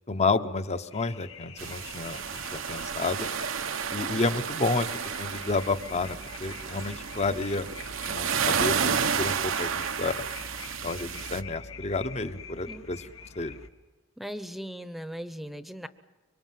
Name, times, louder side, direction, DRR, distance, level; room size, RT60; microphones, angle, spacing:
voice 1, 0.1-3.3 3.9-4.9 5.2-7.7 8.1-10.3 10.8-13.1 13.3-13.6, left 3 dB, 35° left, 12 dB, 1.0 m, -30 dB
sound 1, 0.9-13.7, left 5 dB, 85° left, 2.1 m, -46 dB
sound 2, 1.6-11.4, right 6 dB, 80° right, 1.0 m, -31 dB
voice 2, 14.2-15.9, equal, ahead, 12 dB, 0.9 m, -38 dB
25.5 x 23.5 x 7.6 m, 1.3 s
head